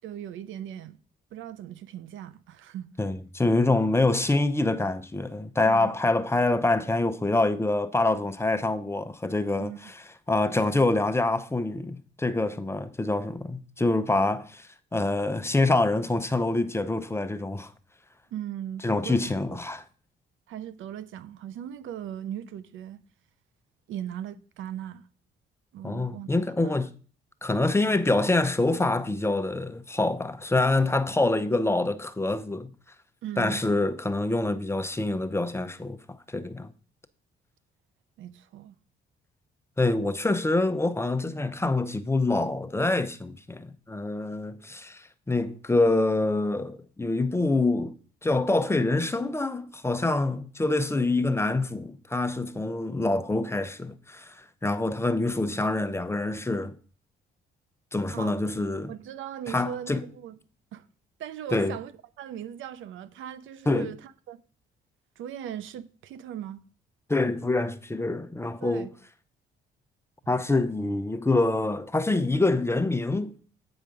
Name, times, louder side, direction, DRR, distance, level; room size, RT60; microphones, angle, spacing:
voice 1, 0.0-1.0 1.3-2.9 5.6-5.9 9.6-9.9 18.3-19.2 19.5-19.6 20.5-23.0 23.9-25.1 25.7-26.7 33.2-33.6 38.2-38.8 58.1-58.4 58.9-60.4 60.7-60.8 61.2-61.9 62.2-64.4 65.2-66.6 68.6-68.9, right 10 dB, 80° right, 0.6 m, -38 dB
voice 2, 3.0-10.0 10.3-17.7 18.8-19.8 25.8-26.9 27.4-32.7 33.4-36.7 39.8-48.0 48.2-56.7 57.9-58.9 59.5-60.1 61.5-61.8 63.7-63.9 67.1-68.9 70.3-73.4, left 2 dB, 15° left, 0.6 m, -26 dB
8.7 x 4.9 x 5.2 m
cardioid pair, 90°, 20 cm